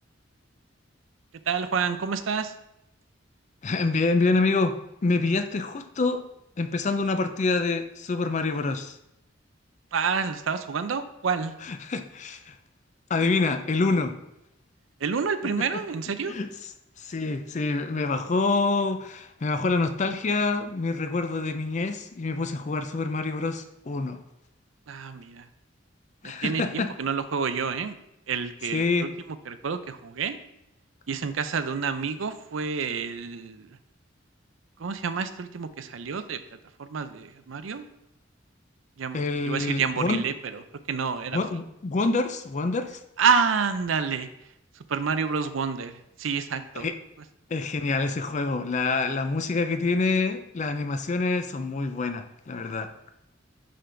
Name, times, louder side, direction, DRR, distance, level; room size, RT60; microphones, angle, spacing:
voice 1, 1.5-2.5 9.9-11.5 15.0-16.3 24.9-25.4 26.2-28.0 28.3-29.1 29.5-30.4 31.1-33.8 34.8-36.4 36.8-37.8 39.0-40.6 40.9-41.4 43.2-44.3 44.9-46.9, right 6 dB, 90° right, 10 dB, 0.5 m, -28 dB
voice 2, 3.6-6.3 6.6-8.9 11.6-12.6 13.1-14.2 15.4-15.8 16.3-16.5 17.0-24.2 26.2-26.9 28.7-29.1 39.1-40.2 41.3-43.0 46.8-46.9 47.5-52.9, left 3 dB, 40° left, 9 dB, 0.4 m, -26 dB
10.0 x 3.8 x 3.3 m, 0.85 s
head